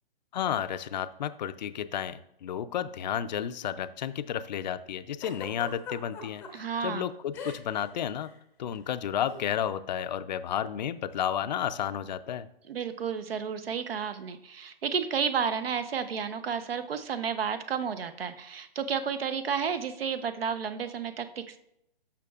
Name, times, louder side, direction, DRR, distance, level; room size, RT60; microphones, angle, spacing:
voice 1, 0.3-8.3 8.6-12.5, left 9 dB, 45° left, 13 dB, 0.5 m, -32 dB
Giggle, 5.2-6.5 7.3-8.3 9.3-9.5, left 4 dB, 5° left, 0.7 m, -40 dB
voice 2, 6.5-7.0 12.7-21.7, right 6 dB, 70° right, 11 dB, 0.9 m, -32 dB
12.5 x 5.9 x 2.4 m, 0.78 s
hypercardioid pair, 150°, 30 cm